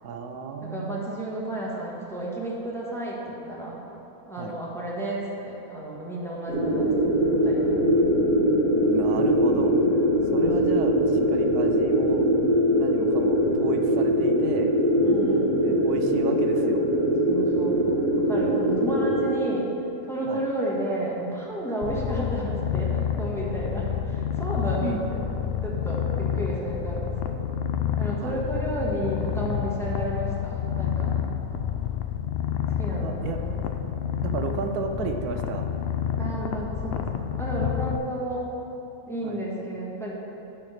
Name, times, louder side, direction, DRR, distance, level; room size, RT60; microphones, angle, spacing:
voice 1, 0.0-1.0 4.4-4.6 8.9-9.8 10.3-11.0 11.3-12.3 12.8-14.7 15.6-16.8 20.3-20.4 24.8-25.0 28.2-28.4 33.0-33.4 34.2-35.7 39.2-39.4, right 5 dB, 85° right, 5 dB, 1.2 m, -32 dB
voice 2, 0.6-3.8 4.3-7.8 10.3-10.5 15.0-15.6 17.3-19.7 20.1-25.2 25.6-27.5 28.0-31.2 32.8-33.6 36.2-37.1 37.4-38.5 39.1-40.1, right 1 dB, ahead, -5 dB, 1.4 m, -32 dB
sound 1, 6.5-19.3, equal, 40° right, 1.6 m, -22 dB
Purr, 21.8-38.0, left 8 dB, 75° left, 0.5 m, -29 dB
11.0 x 4.5 x 6.5 m, 2.9 s
omnidirectional pair, 1.6 m